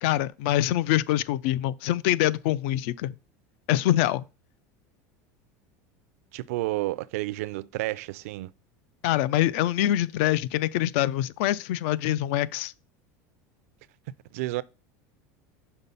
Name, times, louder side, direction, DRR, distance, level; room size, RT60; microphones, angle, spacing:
voice 1, 0.0-3.2 3.7-4.2 9.0-12.7, left 13 dB, 60° left, 0.3 m, -25 dB
voice 2, 6.3-8.5 14.3-14.6, right 18 dB, 80° right, 0.4 m, -30 dB
5.7 x 4.1 x 5.3 m
cardioid pair, 170°, 8 cm